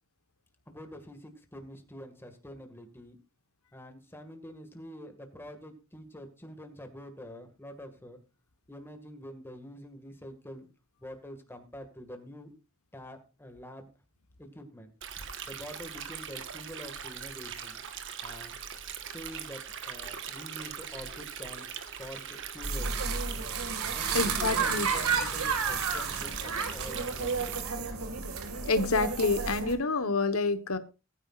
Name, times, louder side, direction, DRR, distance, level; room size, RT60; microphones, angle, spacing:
voice 1, 0.7-3.2 3.7-8.2 8.7-10.7 11.0-12.5 12.9-13.9 14.4-14.9 15.5-17.8 18.2-18.6 19.1-21.7 22.0-23.2 23.9-27.4, equal, 10° left, 5 dB, 2.0 m, -46 dB
Stream, 15.0-27.6, right 7 dB, 60° right, 1.4 m, -41 dB
sound 1, 22.6-29.7, right 5 dB, 85° right, 2.1 m, -31 dB
voice 2, 24.1-24.9 28.7-30.8, left 3 dB, 75° left, 10 dB, 1.3 m, -27 dB
20.0 x 9.8 x 2.5 m, 0.29 s
head